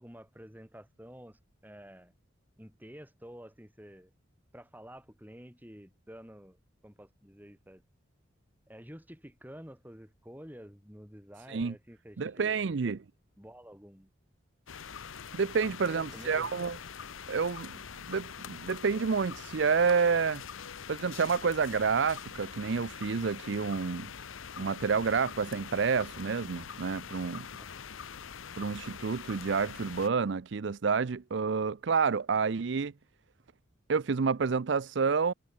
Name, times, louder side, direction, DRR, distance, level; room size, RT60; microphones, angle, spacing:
voice 1, 0.0-2.1 2.6-4.1 4.5-6.6 6.8-7.8 8.7-12.6 12.8-13.0 13.4-14.1 15.6-16.5 27.6-27.8, equal, 10° right, 6.8 m, -50 dB
voice 2, 12.2-13.0 15.3-16.8 17.3-17.7 18.1-20.4 20.9-24.1 24.6-27.5 28.6-32.9 33.9-35.3, right 5 dB, 60° right, 0.5 m, -29 dB
sound 1, 14.7-30.1, left 7 dB, 80° left, 0.9 m, -44 dB
head